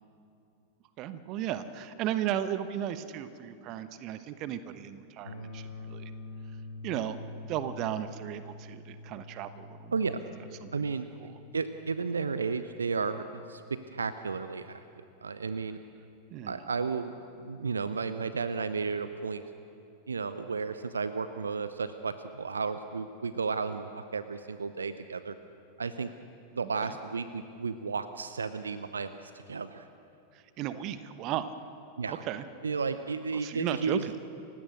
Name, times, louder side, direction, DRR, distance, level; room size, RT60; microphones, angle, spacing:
voice 1, 1.0-6.1 6.8-7.2 7.5-9.9 10.4-10.9 11.2-11.3 16.3-16.6 26.8-27.0 30.6-31.5 32.1-32.4 33.3-34.1, right 11 dB, 40° right, 12 dB, 1.1 m, -35 dB
sound 1, 5.2-15.2, left 2 dB, 80° left, 6.2 m, -47 dB
voice 2, 10.7-14.8 15.2-15.8 16.5-19.4 20.1-25.4 25.8-26.1 26.5-29.2 29.5-29.9 32.0-32.2 32.6-34.0, right 5 dB, 75° right, 12 dB, 0.7 m, -33 dB
29.5 x 16.5 x 6.5 m, 2.6 s
figure-of-eight pair, 90°, 0 cm